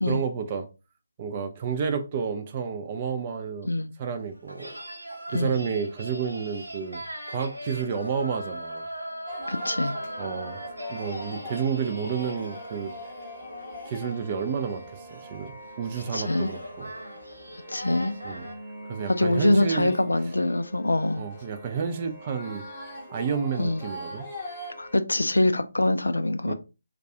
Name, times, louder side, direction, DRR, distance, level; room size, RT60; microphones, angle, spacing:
voice 1, 0.0-0.7 1.2-3.7 4.0-4.7 5.3-7.0 7.3-8.8 10.2-10.6 10.9-12.9 13.9-15.5 15.8-16.9 18.2-18.5 18.9-19.9 21.2-22.6 23.1-24.3 26.5-26.6, right 6 dB, 30° right, 0.4 m, -30 dB
sound 1, 4.3-18.6, right 1 dB, 80° right, 0.7 m, -40 dB
sound 2, 9.3-25.0, equal, 5° left, 1.0 m, -42 dB
voice 2, 9.5-9.9 16.1-16.5 17.7-18.1 19.1-21.2 23.6-23.8 24.8-26.5, left 2 dB, 70° left, 0.3 m, -24 dB
2.3 x 2.3 x 2.7 m
figure-of-eight pair, 145°, 0 cm